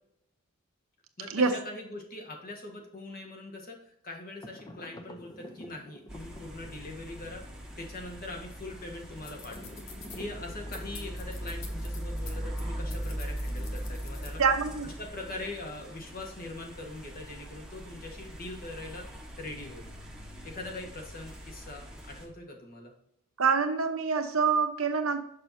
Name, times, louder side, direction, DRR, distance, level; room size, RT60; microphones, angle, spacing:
voice 1, 1.2-3.8 4.0-7.4 7.8-9.7 10.1-14.4 14.8-19.0 19.4-19.9 20.4-22.9, left 2 dB, 45° left, 1 dB, 1.4 m, -42 dB
sound 1, 4.4-7.0 9.1-11.3, equal, 20° left, 0.6 m, -49 dB
sound 2, 6.1-22.3, equal, 5° right, 1.0 m, -40 dB
sound 3, 9.2-10.2 10.7-12.6 12.9-14.4, left 5 dB, 70° left, 1.1 m, -48 dB
voice 2, 14.4-14.9 23.4-25.2, right 5 dB, 85° right, 6 dB, 0.9 m, -26 dB
6.3 x 6.1 x 2.7 m, 0.75 s
head